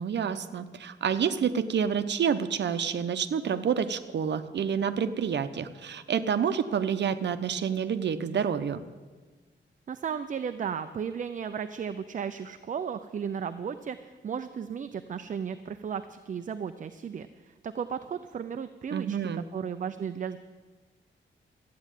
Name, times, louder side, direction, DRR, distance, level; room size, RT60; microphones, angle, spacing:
voice 1, 0.0-8.8 18.9-19.4, right 7 dB, 60° right, 10 dB, 0.8 m, -28 dB
voice 2, 9.9-19.2 19.5-20.4, right 7 dB, 40° right, 9 dB, 0.5 m, -35 dB
13.5 x 9.4 x 9.0 m, 1.3 s
wide cardioid pair, 160°, 20 cm